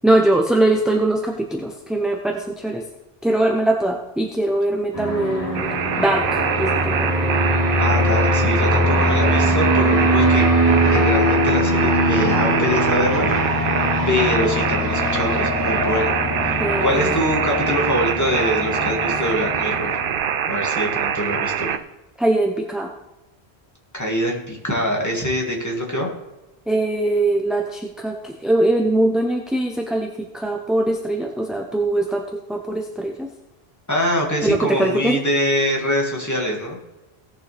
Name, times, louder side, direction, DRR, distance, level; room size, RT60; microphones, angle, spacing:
voice 1, 0.0-2.9 3.2-7.1 16.6-17.1 19.1-19.2 22.2-22.9 26.7-33.3 34.4-35.2, right 1 dB, ahead, 2 dB, 0.7 m, -21 dB
Fixed-wing aircraft airplane, 4.9-20.1, equal, 25° right, 4.2 m, -21 dB
sound 1, 5.5-21.8, right 8 dB, 60° right, 0.7 m, -24 dB
voice 2, 7.8-10.5 10.8-13.7 14.1-16.2 16.4-16.6 16.8-19.9 20.5-21.8 23.9-26.1 33.9-36.8, equal, 15° left, -2 dB, 2.3 m, -24 dB
17.5 x 7.0 x 3.5 m, 1.0 s
omnidirectional pair, 1.0 m